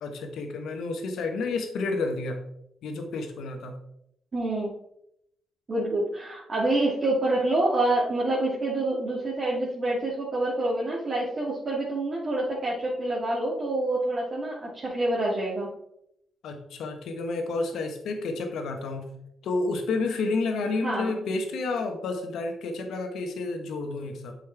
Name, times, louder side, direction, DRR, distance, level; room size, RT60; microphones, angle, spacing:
voice 1, 0.0-2.4 2.8-3.7 16.4-19.1 19.4-24.3, left 3 dB, 75° left, 5 dB, 1.2 m, -30 dB
voice 2, 4.3-4.7 5.7-15.7 20.8-21.1, right 2 dB, 45° right, -6 dB, 2.3 m, -27 dB
8.0 x 5.3 x 3.5 m, 0.76 s
hypercardioid pair, 45°, 0 cm